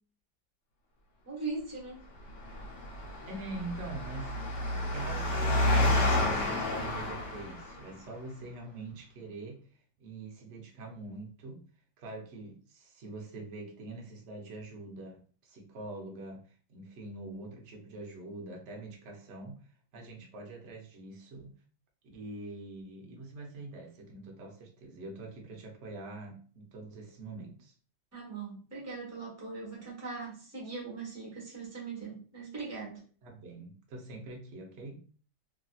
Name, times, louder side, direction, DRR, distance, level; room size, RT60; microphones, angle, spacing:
voice 1, 1.2-2.0 28.1-33.0, right 4 dB, 10° right, -4 dB, 0.9 m, -40 dB
Engine, 2.3-7.9, left 1 dB, 70° left, 1.5 m, -30 dB
voice 2, 3.3-4.3 4.6-9.7 10.0-11.6 12.0-21.5 22.1-27.7 33.2-35.0, right 2 dB, 55° right, 1 dB, 0.9 m, -44 dB
3.1 x 2.7 x 2.3 m, 0.41 s
omnidirectional pair, 1.9 m